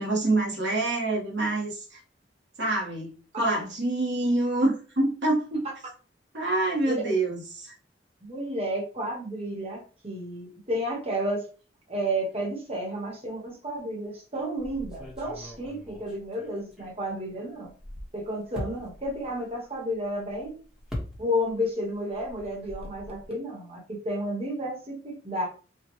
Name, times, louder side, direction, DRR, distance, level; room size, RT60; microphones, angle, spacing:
voice 1, 0.0-2.0 2.6-5.6 6.3-7.7, right 2 dB, 75° right, 1.2 m, -26 dB
voice 2, 8.2-11.4 11.9-17.7 18.1-20.6 21.2-25.5, equal, 35° right, 1.1 m, -31 dB
sound 1, 14.6-17.3 17.6-21.7 22.0-23.3, left 1 dB, 5° right, 1.0 m, -41 dB
4.5 x 2.3 x 3.0 m
head